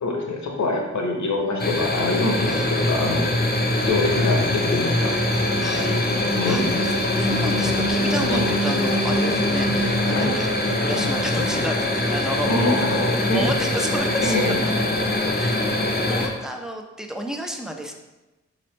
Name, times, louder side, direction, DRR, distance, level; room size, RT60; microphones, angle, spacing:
voice 1, 0.0-3.3 3.8-5.1 6.4-6.6 8.3-8.5 10.1-10.3 12.5-13.5 14.2-14.6, left 2 dB, 65° left, 1 dB, 0.9 m, -25 dB
sound 1, 1.6-16.3, left 1 dB, 30° left, 0.7 m, -22 dB
voice 2, 5.6-5.9 6.4-12.6 13.3-14.4 15.3-17.9, equal, ahead, 3 dB, 0.5 m, -32 dB
3.9 x 3.0 x 3.2 m, 1.1 s
cardioid pair, 45°, 30 cm